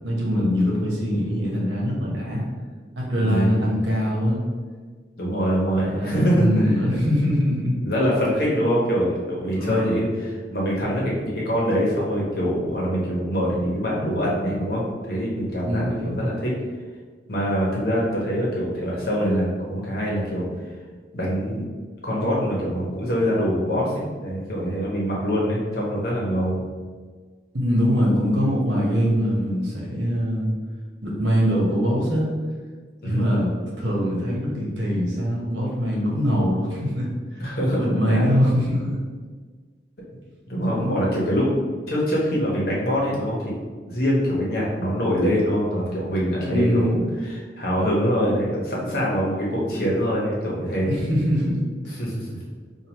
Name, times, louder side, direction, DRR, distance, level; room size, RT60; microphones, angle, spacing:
voice 1, 0.0-2.4 3.0-4.4 5.8-7.8 9.5-10.0 15.6-16.2 27.5-30.5 31.0-32.3 33.0-39.0 40.7-41.0 46.4-47.1 50.8-52.0, equal, 75° right, -3 dB, 1.1 m, -23 dB
voice 2, 3.2-3.7 5.2-6.8 7.8-16.5 17.3-20.5 21.1-21.6 22.0-26.6 33.0-33.3 37.4-38.4 40.5-41.5 41.9-43.5 43.9-47.0 47.2-50.9 52.0-52.3, equal, 55° left, -5 dB, 1.1 m, -24 dB
5.0 x 2.6 x 3.0 m, 1.5 s
head